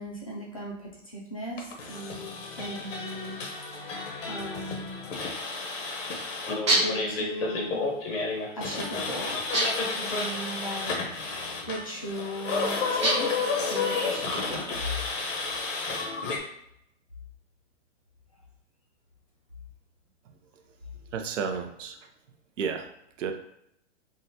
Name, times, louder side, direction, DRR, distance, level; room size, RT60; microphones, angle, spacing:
voice 1, 0.0-3.4 3.8-5.1 6.7-7.8 8.6-10.9 11.2-13.3 13.6-14.9, right 1 dB, 30° left, -4 dB, 0.4 m, -38 dB
sound 1, 1.6-16.4, left 4 dB, 90° left, 0.9 m, -31 dB
sound 2, 6.7-7.1 9.5-10.0 13.0-13.5, right 1 dB, 25° right, 0.5 m, -26 dB
voice 2, 21.1-22.0 22.6-22.8 23.2-23.3, right 6 dB, 80° right, 6 dB, 0.6 m, -31 dB
3.6 x 2.1 x 2.7 m, 0.75 s
hypercardioid pair, 175°, 37 cm